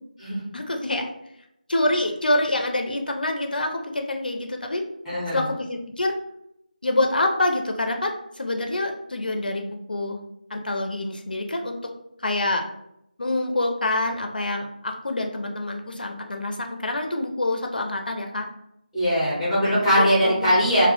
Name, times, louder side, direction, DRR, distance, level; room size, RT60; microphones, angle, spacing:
voice 1, 0.5-1.1 1.7-4.8 5.3-6.2 6.8-10.2 10.5-11.8 12.2-12.7 13.2-18.5 19.6-20.5, left 2 dB, 75° left, 4 dB, 0.4 m, -26 dB
voice 2, 5.1-5.4 18.9-20.9, equal, ahead, -8 dB, 0.5 m, -20 dB
2.1 x 2.0 x 2.8 m, 0.80 s
figure-of-eight pair, 165°, 5 cm